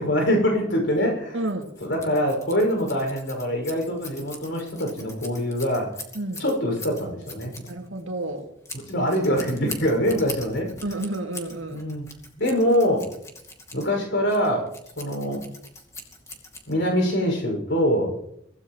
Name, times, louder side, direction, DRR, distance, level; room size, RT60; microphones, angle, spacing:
voice 1, 0.0-1.5 1.8-5.9 6.4-7.7 8.7-11.0 11.7-12.1 12.4-13.1 13.7-14.7 15.0-15.4 16.7-18.1, equal, 65° left, 2 dB, 6.0 m, -24 dB
voice 2, 1.3-1.7 6.1-6.4 7.7-8.5 10.8-11.9, right 1 dB, 75° right, 3 dB, 2.4 m, -30 dB
Scissors, 1.4-17.1, left 2 dB, 15° left, 2.5 m, -42 dB
24.0 x 16.5 x 3.1 m, 0.71 s
head